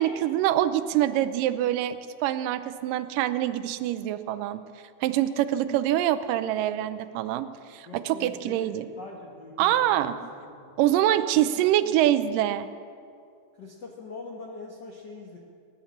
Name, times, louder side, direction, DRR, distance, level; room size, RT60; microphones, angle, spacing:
voice 1, 0.0-4.6 5.0-8.9 9.6-10.2 10.8-12.7, right 12 dB, 85° right, 13 dB, 2.3 m, -25 dB
voice 2, 7.9-10.8 11.3-11.9 13.5-15.4, left 3 dB, 60° left, -1 dB, 1.1 m, -43 dB
19.5 x 10.0 x 7.2 m, 2.3 s
omnidirectional pair, 3.8 m